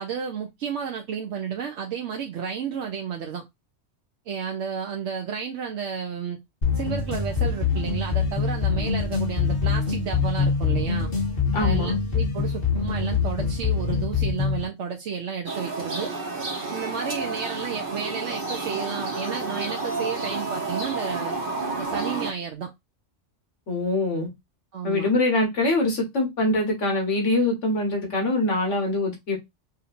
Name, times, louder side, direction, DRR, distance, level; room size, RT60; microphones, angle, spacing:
voice 1, 0.0-3.4 4.3-6.4 6.7-11.1 11.6-16.1 16.7-22.7 24.7-25.1, right 7 dB, 70° right, 1.0 m, -32 dB
sound 1, 6.6-14.6, left 5 dB, 50° left, 1.7 m, -24 dB
voice 2, 11.5-12.0 23.7-24.3 24.8-29.4, left 2 dB, 75° left, 1.8 m, -24 dB
sound 2, 15.5-22.3, right 3 dB, 45° right, 1.3 m, -30 dB
5.6 x 2.8 x 2.5 m
omnidirectional pair, 1.3 m